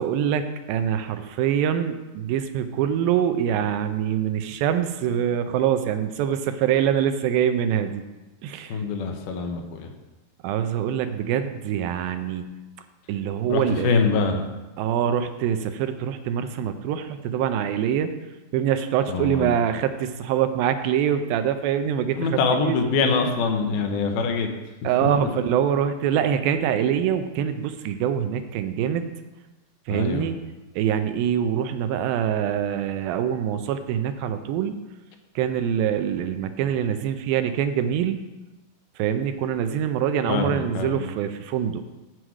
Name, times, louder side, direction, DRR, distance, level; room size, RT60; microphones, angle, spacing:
voice 1, 0.0-8.0 8.4-8.8 10.4-12.4 13.1-13.9 14.8-18.1 18.5-22.8 24.8-29.1 29.9-30.4 30.8-34.8 35.4-38.3 39.0-41.8, right 9 dB, 80° right, 9 dB, 2.3 m, -24 dB
voice 2, 8.7-9.9 13.5-14.4 19.1-19.6 22.1-24.5 29.9-30.3 40.3-41.0, left 4 dB, 85° left, 4 dB, 2.8 m, -24 dB
7.8 x 7.5 x 4.7 m, 1.1 s
omnidirectional pair, 4.3 m